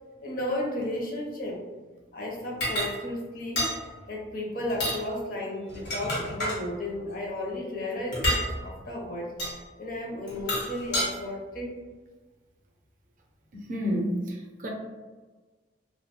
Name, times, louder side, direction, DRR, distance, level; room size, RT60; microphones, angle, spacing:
voice 1, 0.2-1.6 2.1-8.3 8.6-11.7, left 1 dB, 50° left, -1 dB, 0.5 m, -34 dB
sound 1, 2.6-2.9 3.6-3.8 4.7-5.0 5.7-6.6 8.1-8.5 9.4-9.6 10.3-11.1, equal, 80° left, 1.0 m, -28 dB
voice 2, 13.5-14.7, equal, 50° right, 0 dB, 0.5 m, -30 dB
2.3 x 2.1 x 2.8 m, 1.3 s
head